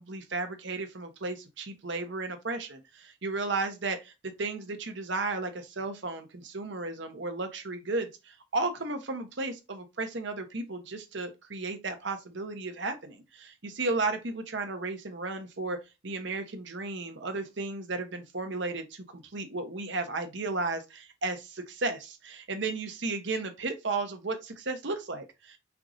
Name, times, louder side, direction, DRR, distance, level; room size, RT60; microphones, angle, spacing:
voice 1, 0.0-4.1 4.4-15.8 16.0-25.6, right 3 dB, 65° right, 0.9 m, -34 dB
4.6 x 2.5 x 3.8 m
head